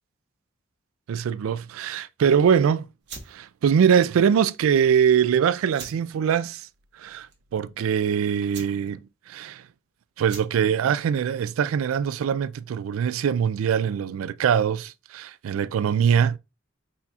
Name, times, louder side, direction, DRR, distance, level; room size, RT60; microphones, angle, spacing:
voice 1, 1.1-2.8 3.3-6.7 7.0-7.3 7.5-9.0 9.3-9.6 10.2-16.4, right 7 dB, 75° right, 0.3 m, -22 dB
sound 1, 3.0-12.5, right 5 dB, 60° right, 1.2 m, -47 dB
4.2 x 4.1 x 2.3 m
head